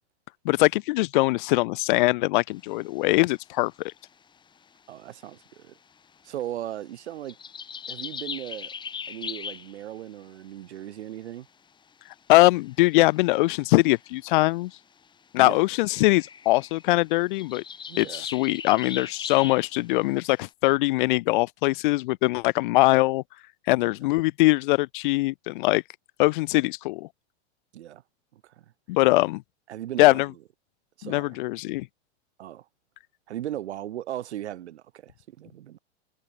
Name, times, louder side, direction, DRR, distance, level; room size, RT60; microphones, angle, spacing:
voice 1, 0.4-3.7 12.3-14.7 15.3-17.6 18.0-23.2 23.7-25.8 26.2-27.1 28.9-29.4 30.0-30.3 31.0-31.9, left 21 dB, 50° left, 0.9 m, -22 dB
sound 1, 2.6-3.3 3.7-3.8 4.0-5.7 6.0-6.7 7.1-10.4 12.3-14.2 15.0-15.1 15.3-15.4 15.7-20.5, left 6 dB, 15° left, 3.2 m, -40 dB
voice 2, 4.9-5.7 6.2-7.4 7.9-8.7 9.1-11.5 15.4-15.6 17.9-18.3 27.7-28.0 28.3-28.7 29.7-30.3 31.0-31.4 32.4-32.7 33.3-35.8, right 12 dB, 80° right, 3.5 m, -37 dB
supercardioid pair, 155°, 33 cm